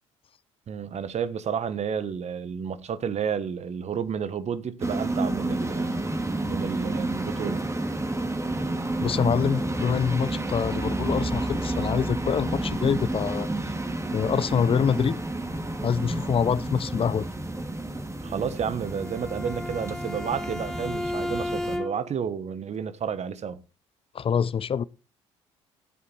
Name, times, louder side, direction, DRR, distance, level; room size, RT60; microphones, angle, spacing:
voice 1, 0.7-7.6 18.2-23.6, right 7 dB, 45° right, 1.4 m, -31 dB
sound 1, 4.8-21.8, right 2 dB, 20° right, 2.8 m, -30 dB
voice 2, 9.0-13.5 14.1-15.2 15.8-17.3 24.1-24.8, left 7 dB, 35° left, 0.7 m, -25 dB
Bowed string instrument, 18.8-22.2, left 1 dB, 5° left, 1.1 m, -34 dB
13.0 x 8.3 x 4.5 m
hypercardioid pair, 55°, 15 cm